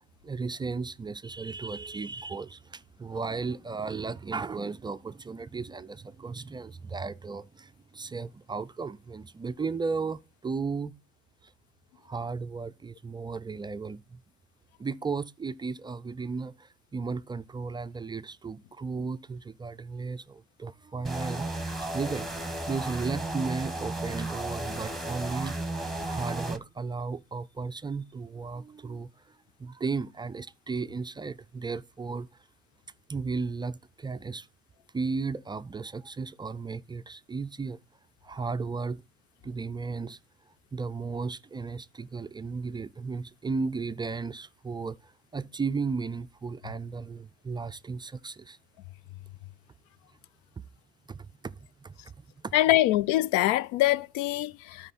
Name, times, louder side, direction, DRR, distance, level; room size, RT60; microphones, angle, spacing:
voice 1, 0.2-10.9 11.4-11.5 12.0-14.2 14.8-22.3 22.7-25.6 26.0-29.1 29.6-32.3 33.1-34.5 34.9-37.8 38.2-39.0 39.4-40.2 40.7-48.6 50.6-50.7 51.1-51.5 51.8-51.9 52.4-52.5, right 4 dB, 15° right, 0.4 m, -35 dB
sound 1, 21.0-26.6, right 2 dB, ahead, 1.3 m, -34 dB
voice 2, 52.5-54.9, left 15 dB, 70° left, 0.4 m, -24 dB
12.5 x 5.0 x 4.1 m
hypercardioid pair, 80°, 29 cm